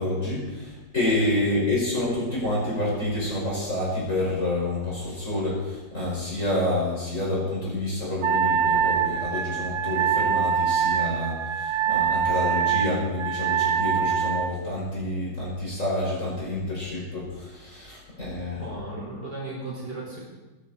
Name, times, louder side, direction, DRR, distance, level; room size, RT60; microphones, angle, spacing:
voice 1, 0.0-18.6, left 1 dB, 40° left, -5 dB, 5.4 m, -28 dB
Wind instrument woodwind instrument, 8.2-14.6, right 8 dB, 85° right, 0.6 m, -24 dB
voice 2, 18.6-20.2, right 2 dB, 55° right, -5 dB, 5.4 m, -35 dB
16.5 x 12.5 x 4.2 m, 1.2 s
omnidirectional pair, 2.2 m